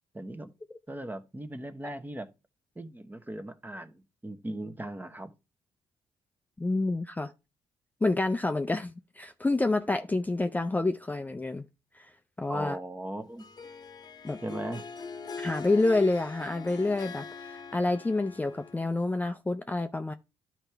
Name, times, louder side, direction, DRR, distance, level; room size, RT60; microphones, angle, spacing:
voice 1, 0.1-0.5 0.9-2.3 2.7-5.3 12.5-13.5 14.4-14.9, right 1 dB, 15° right, 1.0 m, -38 dB
voice 2, 6.6-7.3 8.0-11.7 11.9-12.1 12.4-12.8 14.2-14.4 15.4-20.1, left 2 dB, 15° left, 0.5 m, -28 dB
Harp, 13.4-19.2, left 5 dB, 35° left, 0.9 m, -42 dB
11.5 x 4.5 x 3.4 m
supercardioid pair, 55°, 11 cm